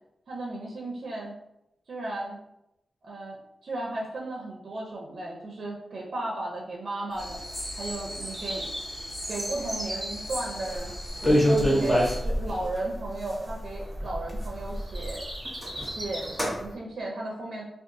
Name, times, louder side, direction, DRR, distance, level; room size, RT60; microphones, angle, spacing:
voice 1, 0.3-1.3 1.9-2.4 3.0-3.4 3.6-7.4 7.8-8.6 9.3-10.9 11.2-15.2 15.8-17.6, right 2 dB, 70° right, -2 dB, 0.5 m, -35 dB
Bird vocalization bird call bird song, 7.1-16.7, right 1 dB, 20° right, 0.8 m, -40 dB
sound 1, 7.2-12.2, left 1 dB, 40° left, 1.2 m, -39 dB
sound 2, 10.7-10.8 11.0-12.8 13.4-13.5 13.8-15.1 15.5-15.9 16.2-16.6, equal, 20° left, 0.8 m, -24 dB
2.6 x 2.4 x 3.6 m, 0.85 s
wide cardioid pair, 130°, 0 cm